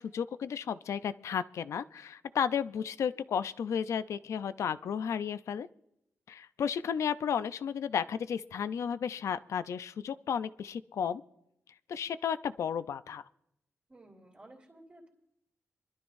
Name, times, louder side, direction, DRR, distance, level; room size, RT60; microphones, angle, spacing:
voice 1, 0.0-5.7 6.3-11.2 11.9-13.2, left 7 dB, 85° left, 13 dB, 0.5 m, -33 dB
voice 2, 13.9-15.1, right 1 dB, 25° right, -2 dB, 2.8 m, -54 dB
24.5 x 12.5 x 2.6 m, 0.77 s
wide cardioid pair, 150°, 5 cm